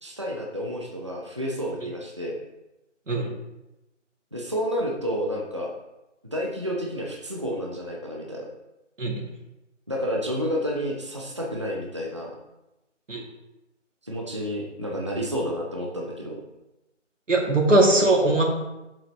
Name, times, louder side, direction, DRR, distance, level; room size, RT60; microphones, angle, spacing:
voice 1, 0.0-2.4 4.3-5.7 6.3-8.5 9.9-12.3 14.0-16.4, equal, 25° right, -2 dB, 0.7 m, -30 dB
voice 2, 17.3-18.4, right 2 dB, 90° right, 0 dB, 2.4 m, -20 dB
8.1 x 7.2 x 3.0 m, 0.97 s
figure-of-eight pair, 170°, 36 cm